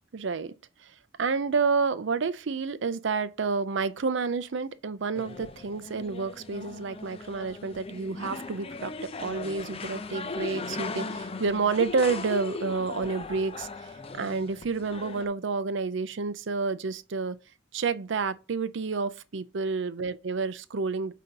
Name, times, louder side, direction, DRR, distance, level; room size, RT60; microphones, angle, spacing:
voice 1, 0.1-0.5 0.8-0.9 1.2-8.9 9.2-17.4 17.7-21.1, right 4 dB, 70° right, 0.5 m, -29 dB
sound 1, 5.1-15.3, left 3 dB, 30° left, 0.5 m, -38 dB
8.2 x 2.8 x 5.2 m
head